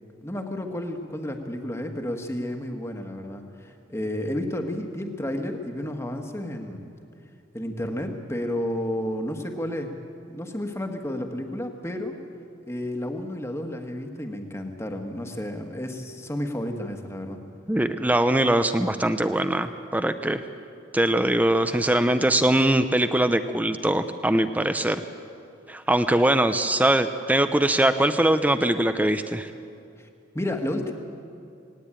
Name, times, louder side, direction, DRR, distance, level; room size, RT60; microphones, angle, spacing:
voice 1, 0.2-6.9 7.5-10.0 10.3-12.2 12.7-17.4 30.0-30.1 30.3-30.9, left 1 dB, 15° left, 4 dB, 1.5 m, -31 dB
voice 2, 17.7-20.4 20.9-25.0 25.7-29.5, right 1 dB, 10° right, 9 dB, 0.5 m, -22 dB
18.5 x 18.5 x 8.9 m, 2.5 s
head